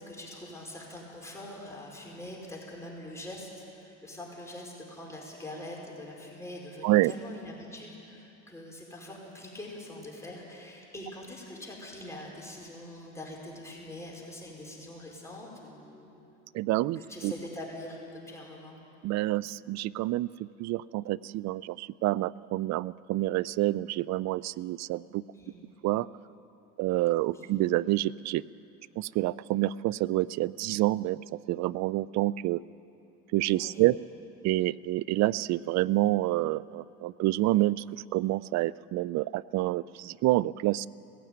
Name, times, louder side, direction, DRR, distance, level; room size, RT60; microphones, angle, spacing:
voice 1, 0.0-16.1 16.9-18.7 25.3-25.6 27.3-27.5 33.5-33.9, left 1 dB, 10° left, -3 dB, 5.0 m, -43 dB
voice 2, 16.5-17.3 19.0-25.2 25.8-26.1 26.8-28.4 29.0-31.2 31.5-32.6 33.3-34.0 34.4-37.8 38.1-40.9, right 17 dB, 55° right, 22 dB, 0.5 m, -28 dB
17.5 x 15.5 x 9.3 m, 2.8 s
supercardioid pair, 90°, 33 cm